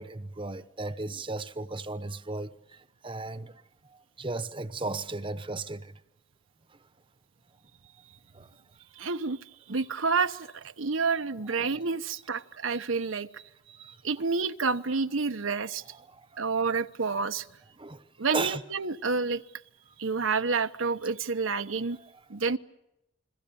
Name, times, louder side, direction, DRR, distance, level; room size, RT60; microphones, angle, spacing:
voice 1, 0.0-5.9 8.3-8.5 11.6-11.8 15.9-16.4 17.8-18.0 18.3-18.6 21.9-22.2, right 3 dB, 25° right, 1.0 m, -36 dB
voice 2, 9.0-9.4 9.7-15.8 16.4-17.5 18.2-19.4 20.0-22.0 22.3-22.6, right 4 dB, 90° right, 1.0 m, -29 dB
29.5 x 22.0 x 7.1 m
head